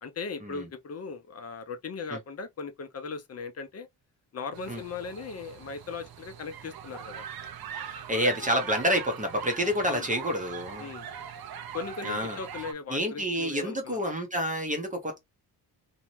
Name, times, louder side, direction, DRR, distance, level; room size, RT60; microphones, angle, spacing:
voice 1, 0.0-3.9 4.3-7.2 9.9-10.1 10.8-11.1 11.7-14.0, left 5 dB, 35° left, 0.6 m, -38 dB
sound 1, 4.5-12.7, right 8 dB, 60° right, 0.6 m, -41 dB
voice 2, 7.8-10.9 12.0-12.4 12.9-15.2, equal, 20° right, 0.7 m, -28 dB
2.7 x 2.1 x 3.0 m
cardioid pair, 120°, 42 cm